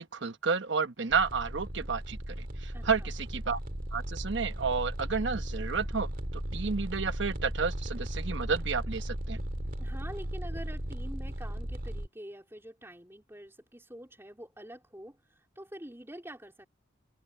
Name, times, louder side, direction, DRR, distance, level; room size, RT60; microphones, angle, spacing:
voice 1, 0.0-3.6 3.9-9.4, right 5 dB, 65° right, 1.1 m, -31 dB
sound 1, 1.1-12.1, equal, 45° right, 2.3 m, -36 dB
voice 2, 2.7-3.1 9.8-15.2 15.6-16.7, right 1 dB, 10° right, 3.8 m, -46 dB
head